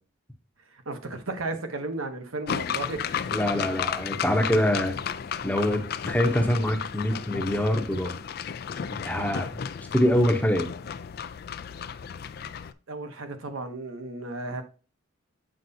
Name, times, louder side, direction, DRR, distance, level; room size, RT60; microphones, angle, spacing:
voice 1, 0.7-3.0 12.9-14.6, right 2 dB, 85° right, 1.1 m, -34 dB
sound 1, 2.5-12.7, left 7 dB, 50° left, 0.3 m, -33 dB
voice 2, 3.3-4.9 5.4-8.2 9.0-9.5 9.9-10.7, left 1 dB, 5° left, 0.8 m, -24 dB
7.7 x 5.3 x 2.7 m
head